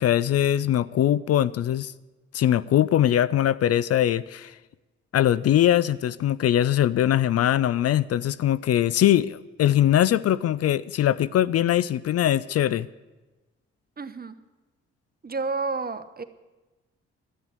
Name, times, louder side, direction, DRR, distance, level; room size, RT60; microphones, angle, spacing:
voice 1, 0.0-1.9 2.3-4.5 5.1-12.9, left 11 dB, 55° left, 18 dB, 0.5 m, -21 dB
voice 2, 14.0-14.3 15.2-16.2, right 4 dB, 30° right, 11 dB, 1.0 m, -30 dB
10.5 x 8.8 x 9.8 m, 1.1 s
supercardioid pair, 50°, 29 cm